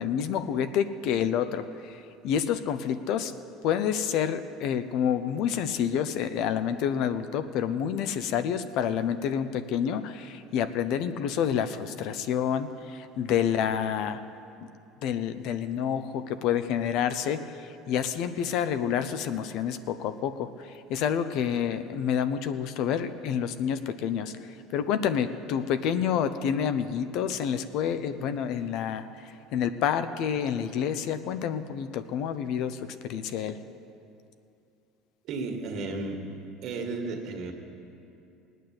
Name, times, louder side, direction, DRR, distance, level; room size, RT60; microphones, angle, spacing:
voice 1, 0.0-3.3 3.6-14.2 15.0-24.3 24.7-33.6, left 8 dB, 65° left, 11 dB, 0.7 m, -28 dB
voice 2, 35.3-36.2 36.6-37.5, right 3 dB, 55° right, 2 dB, 2.0 m, -33 dB
18.0 x 9.3 x 7.8 m, 2.6 s
cardioid pair, 130°, 0 cm